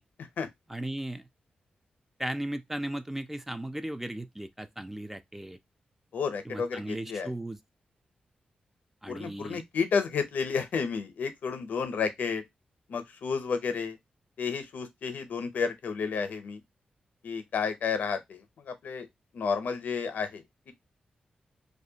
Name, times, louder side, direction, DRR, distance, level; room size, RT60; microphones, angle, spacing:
voice 1, 0.7-1.2 2.2-5.6 6.5-7.6 9.0-9.6, right 1 dB, 10° right, 0.3 m, -36 dB
voice 2, 6.1-7.3 9.1-12.4 12.9-14.0 14.4-16.6 17.2-19.1 19.3-20.7, left 5 dB, 80° left, 0.5 m, -31 dB
2.5 x 2.1 x 2.7 m
cardioid pair, 85°, 3 cm